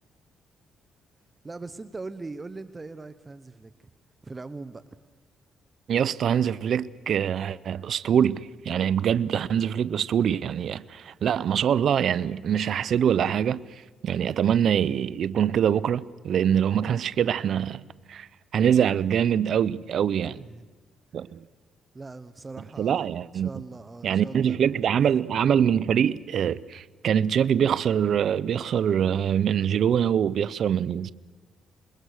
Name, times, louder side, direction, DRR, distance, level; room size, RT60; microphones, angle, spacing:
voice 1, 1.4-3.7 4.2-4.8 20.4-20.7 21.9-24.9, right 3 dB, 25° right, 1.0 m, -40 dB
voice 2, 5.9-13.6 14.0-17.8 18.1-18.3 18.5-20.4 21.1-21.4 22.8-23.5 24.0-31.1, right 8 dB, 65° right, 0.7 m, -24 dB
27.0 x 21.5 x 6.5 m
cardioid pair, 90°, 0 cm